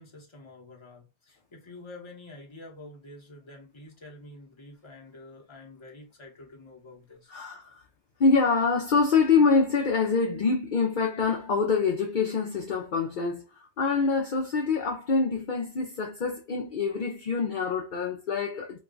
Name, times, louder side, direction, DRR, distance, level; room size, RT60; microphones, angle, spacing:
voice 1, 0.0-7.3, left 2 dB, 30° left, 1.0 m, -48 dB
voice 2, 7.3-7.8 8.2-18.8, left 4 dB, 55° left, 0.7 m, -25 dB
3.1 x 2.2 x 3.7 m
omnidirectional pair, 1.1 m